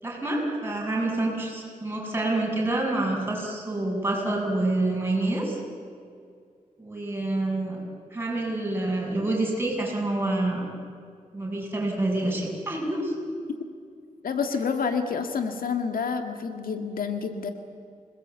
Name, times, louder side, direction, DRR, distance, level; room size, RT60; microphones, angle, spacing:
voice 1, 0.0-5.6 6.8-7.8 8.1-10.7 11.3-13.1, right 2 dB, 15° right, -2 dB, 7.3 m, -27 dB
voice 2, 14.2-17.5, left 5 dB, 80° left, 6 dB, 2.0 m, -28 dB
27.0 x 20.0 x 8.3 m, 2.2 s
wide cardioid pair, 130°, 14 cm